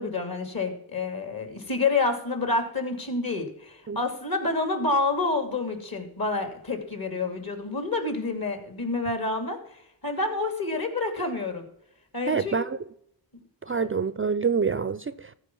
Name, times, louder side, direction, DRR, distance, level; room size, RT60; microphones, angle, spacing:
voice 1, 0.0-11.6 12.1-12.6 13.7-13.9, left 3 dB, 50° left, 2.7 m, -28 dB
voice 2, 12.3-12.8 13.6-15.3, right 5 dB, 30° right, 0.4 m, -26 dB
14.0 x 4.8 x 6.0 m
cardioid pair, 55°, 46 cm